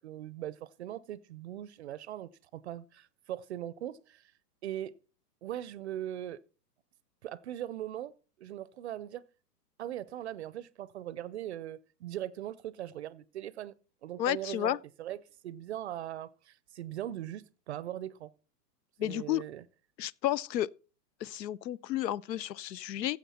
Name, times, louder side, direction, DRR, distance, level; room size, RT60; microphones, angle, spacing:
voice 1, 0.0-4.3 4.6-4.9 5.4-6.4 7.2-8.1 8.4-9.2 9.8-13.7 14.0-15.2 15.4-18.3 19.0-19.6, right 12 dB, 45° right, 0.5 m, -40 dB
voice 2, 14.2-14.8 19.0-19.4 20.0-20.7 21.2-23.2, left 13 dB, 85° left, 0.7 m, -32 dB
15.0 x 7.8 x 4.1 m
hypercardioid pair, 150°, 49 cm